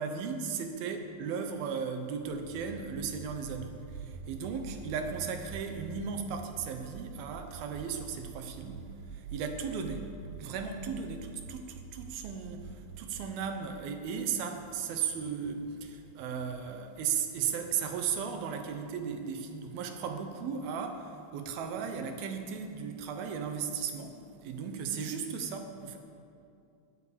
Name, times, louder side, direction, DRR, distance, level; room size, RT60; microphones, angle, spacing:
voice 1, 0.0-10.1 10.4-26.0, right 6 dB, 70° right, 6 dB, 2.8 m, -36 dB
sound 1, 2.2-19.2, right 6 dB, 85° right, 3.0 m, -47 dB
17.5 x 8.9 x 7.1 m, 2.5 s
omnidirectional pair, 4.7 m